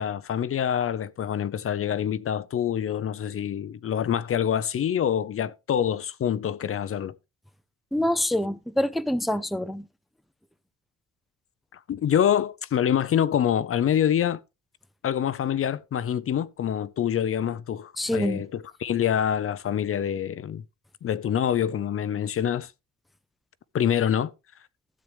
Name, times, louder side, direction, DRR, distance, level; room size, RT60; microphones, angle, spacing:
voice 1, 0.0-7.1 11.7-14.4 15.0-20.6 21.0-22.7 23.7-24.3, left 9 dB, 45° left, 0.6 m, -26 dB
voice 2, 7.9-9.9 18.0-18.4, left 1 dB, ahead, 0.6 m, -26 dB
12.5 x 7.7 x 3.3 m
cardioid pair, 90°, 30 cm